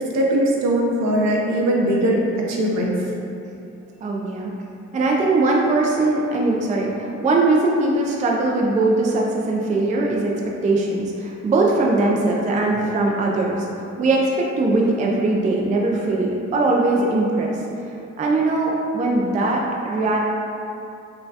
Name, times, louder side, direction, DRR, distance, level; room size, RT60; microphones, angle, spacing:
voice 1, 0.0-2.9, right 1 dB, 60° right, -2 dB, 0.7 m, -20 dB
voice 2, 4.0-4.5 4.9-13.7 14.0-17.6 18.2-20.2, right 2 dB, 25° right, -2 dB, 0.3 m, -20 dB
4.3 x 2.2 x 2.7 m, 2.7 s
cardioid pair, 90°, 30 cm